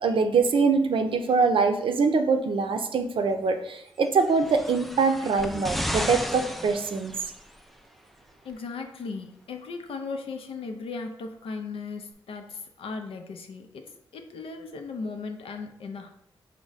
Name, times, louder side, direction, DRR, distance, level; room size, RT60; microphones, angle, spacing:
voice 1, 0.0-7.1, right 4 dB, 65° right, 6 dB, 0.5 m, -23 dB
sound 1, 4.2-7.6 8.5-8.6, equal, ahead, 0.3 m, -33 dB
voice 2, 8.4-16.1, left 4 dB, 75° left, 5 dB, 0.5 m, -37 dB
4.8 x 2.1 x 4.0 m, 0.75 s
cardioid pair, 55°, 9 cm